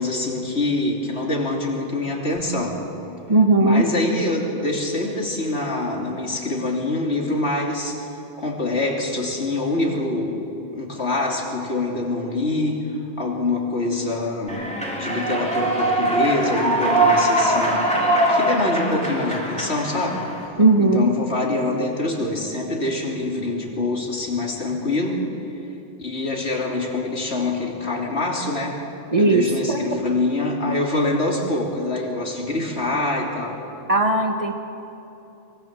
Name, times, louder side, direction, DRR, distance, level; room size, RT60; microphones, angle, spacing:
voice 1, 0.0-2.8 3.6-8.1 8.4-10.4 10.7-12.8 13.2-14.7 15.0-17.8 18.3-20.3 20.8-25.2 26.0-28.8 29.2-33.7, left 2 dB, 85° left, 0 dB, 3.4 m, -25 dB
voice 2, 3.3-3.8 20.6-21.1 29.1-29.9 33.9-34.5, right 2 dB, 30° right, 4 dB, 1.9 m, -17 dB
Human voice / Clapping / Cheering, 14.5-20.5, right 1 dB, 5° left, 3.8 m, -22 dB
24.0 x 22.5 x 7.6 m, 2.9 s
omnidirectional pair, 1.1 m